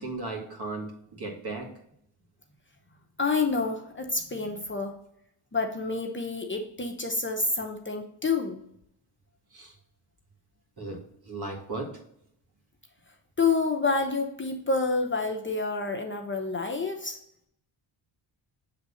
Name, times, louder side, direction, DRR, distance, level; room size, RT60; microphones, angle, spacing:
voice 1, 0.0-1.8 9.5-9.7 10.8-12.0, right 2 dB, 50° right, 0 dB, 2.1 m, -36 dB
voice 2, 3.2-5.0 5.5-8.6 13.4-17.2, left 4 dB, 25° left, 3 dB, 0.8 m, -28 dB
6.8 x 3.6 x 4.2 m, 0.72 s
cardioid pair, 65°, 49 cm